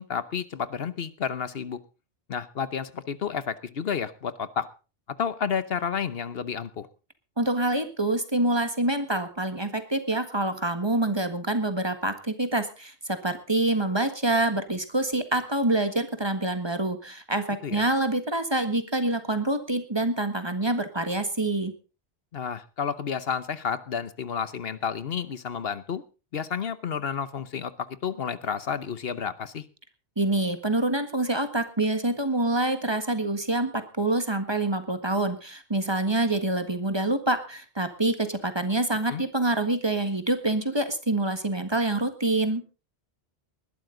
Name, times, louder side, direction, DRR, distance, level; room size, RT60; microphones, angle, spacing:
voice 1, 0.0-1.8 2.3-4.7 5.2-6.9 17.6-17.8 22.3-26.0 26.3-29.6 39.1-39.2, left 7 dB, 70° left, 15 dB, 1.1 m, -31 dB
voice 2, 7.4-21.7 30.2-42.6, right 2 dB, 25° right, 9 dB, 1.6 m, -26 dB
20.0 x 12.5 x 3.9 m, 0.33 s
omnidirectional pair, 1.1 m